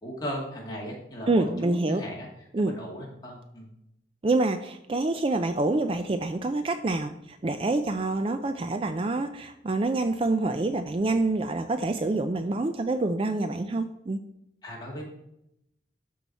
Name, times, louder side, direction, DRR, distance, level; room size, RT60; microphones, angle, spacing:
voice 1, 0.0-2.3 2.6-3.7 14.6-15.0, equal, 20° left, -3 dB, 2.1 m, -37 dB
voice 2, 1.3-2.0 2.5-2.7 4.2-14.2, right 2 dB, 30° right, 9 dB, 0.4 m, -27 dB
12.5 x 4.7 x 4.1 m, 0.81 s
head